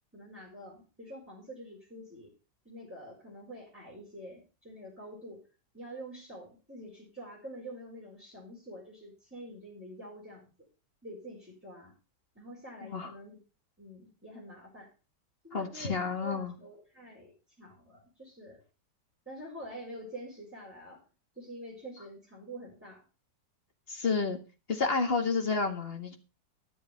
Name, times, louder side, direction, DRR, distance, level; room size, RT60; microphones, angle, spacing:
voice 1, 0.1-2.3 2.7-5.4 5.7-10.5 11.0-11.9 12.4-13.4 13.8-14.9 15.4-17.3 17.6-18.6 19.3-21.1 21.3-23.0, equal, 5° right, -5 dB, 5.2 m, -46 dB
voice 2, 15.5-16.5 23.9-24.4 24.7-26.2, left 4 dB, 35° left, 5 dB, 1.8 m, -30 dB
13.0 x 7.0 x 5.7 m, 0.32 s
omnidirectional pair, 1.9 m